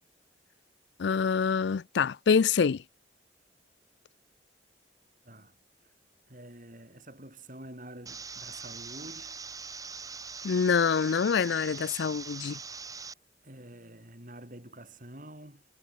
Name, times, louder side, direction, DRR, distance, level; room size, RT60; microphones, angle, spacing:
voice 1, 1.0-2.8 10.4-12.6, left 6 dB, 75° left, 0.4 m, -26 dB
voice 2, 5.2-5.6 5.8-5.9 6.3-9.4 13.4-15.7, right 1 dB, 45° right, 6.4 m, -47 dB
sound 1, 8.1-13.1, right 5 dB, 20° right, 6.0 m, -42 dB
head